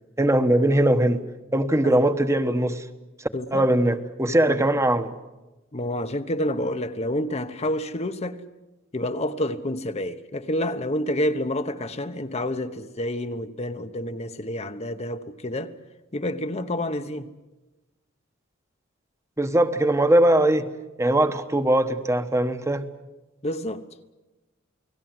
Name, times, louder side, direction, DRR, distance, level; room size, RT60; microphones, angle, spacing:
voice 1, 0.2-1.2 1.5-2.8 3.5-5.1 19.4-20.7 21.0-22.9, right 1 dB, 15° right, 1.2 m, -20 dB
voice 2, 3.3-3.7 4.5-4.6 5.7-8.4 8.9-15.7 16.1-17.3 23.4-23.8, left 1 dB, 30° left, 1.0 m, -28 dB
29.5 x 19.0 x 7.8 m
head